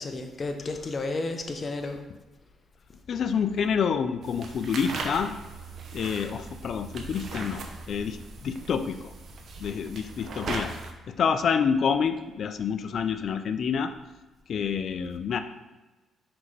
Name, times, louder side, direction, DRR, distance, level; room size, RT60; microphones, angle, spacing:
voice 1, 0.0-2.0, left 3 dB, 35° left, 5 dB, 0.8 m, -32 dB
voice 2, 3.1-5.3 5.9-7.6 7.9-9.1 9.6-10.7 11.1-13.9 14.5-15.4, left 6 dB, 60° left, 9 dB, 0.4 m, -28 dB
sound 1, 4.2-10.9, right 3 dB, 60° right, 0.8 m, -38 dB
6.0 x 5.3 x 3.2 m, 1.1 s
cardioid pair, 90°, 0 cm